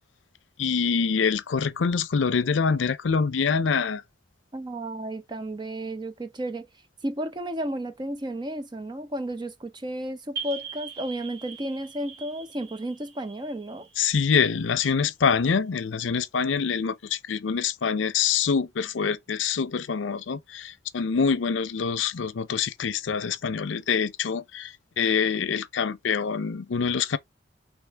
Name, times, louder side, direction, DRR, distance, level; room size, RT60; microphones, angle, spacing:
voice 1, 0.6-4.0 14.0-27.2, left 6 dB, 85° left, 0.5 m, -25 dB
voice 2, 4.5-6.7 7.0-13.9, right 1 dB, 25° right, 0.7 m, -33 dB
sound 1, 10.4-14.8, right 6 dB, 60° right, 1.6 m, -41 dB
3.6 x 3.1 x 4.4 m
head